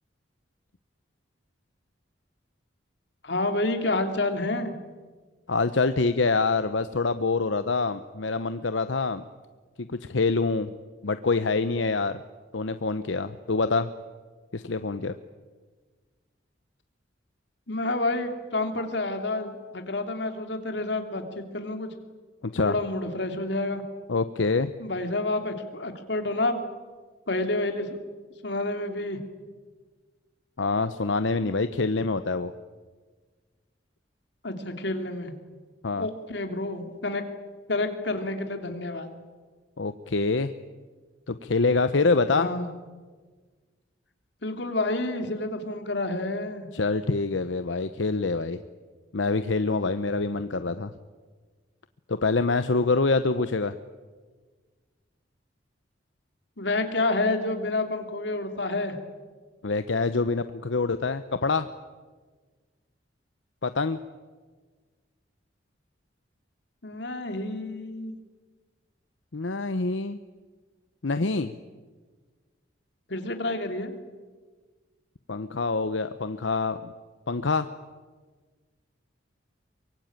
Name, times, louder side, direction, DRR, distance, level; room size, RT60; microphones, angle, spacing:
voice 1, 3.2-4.7 17.7-21.9 22.6-23.8 24.8-26.6 27.3-27.9 28.4-29.2 34.4-35.4 36.0-37.2 37.7-39.1 42.3-42.7 44.4-46.7 56.6-59.0 66.8-68.1 73.1-73.9, left 2 dB, 65° left, 5 dB, 3.1 m, -29 dB
voice 2, 5.5-9.3 10.0-10.7 11.0-12.2 12.5-13.9 14.5-15.2 22.4-22.7 24.1-24.7 30.6-32.5 35.8-36.1 39.8-40.5 41.3-42.5 46.7-48.6 49.1-50.9 52.1-53.7 59.6-61.7 63.6-64.0 69.3-70.2 71.0-71.5 75.3-76.9 77.3-77.7, left 3 dB, 85° left, 11 dB, 0.9 m, -25 dB
23.5 x 23.5 x 9.0 m, 1.4 s
head